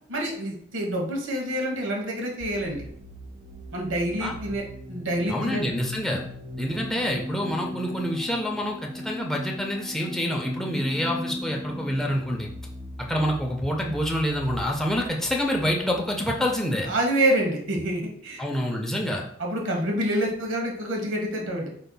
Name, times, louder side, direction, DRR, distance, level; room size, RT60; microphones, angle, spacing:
voice 1, 0.1-2.8 3.7-4.6 4.9-5.6 16.8-18.4 19.4-21.7, right 1 dB, 85° right, 0 dB, 1.2 m, -27 dB
sound 1, 2.4-17.9, left 1 dB, 20° right, 1.0 m, -39 dB
voice 2, 5.3-6.2 6.6-12.5 13.1-16.9 18.4-19.2, equal, ahead, -1 dB, 0.5 m, -27 dB
5.3 x 4.4 x 2.2 m, 0.66 s
head